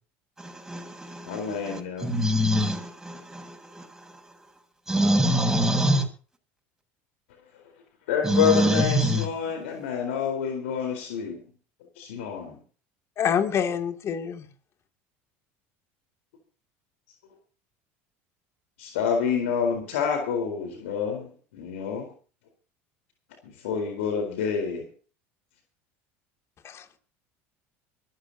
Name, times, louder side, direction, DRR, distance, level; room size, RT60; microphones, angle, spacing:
voice 1, 0.4-4.1 4.9-6.1 8.2-9.3, equal, 5° right, 7.2 m, -25 dB
voice 2, 1.3-2.1 8.1-11.4 12.0-12.6 18.8-22.1 23.4-24.9, left 7 dB, 85° left, 4.2 m, -28 dB
voice 3, 13.2-14.5 26.6-26.8, left 8 dB, 45° left, 2.7 m, -26 dB
24.0 x 14.5 x 2.8 m
supercardioid pair, 95°, 7 cm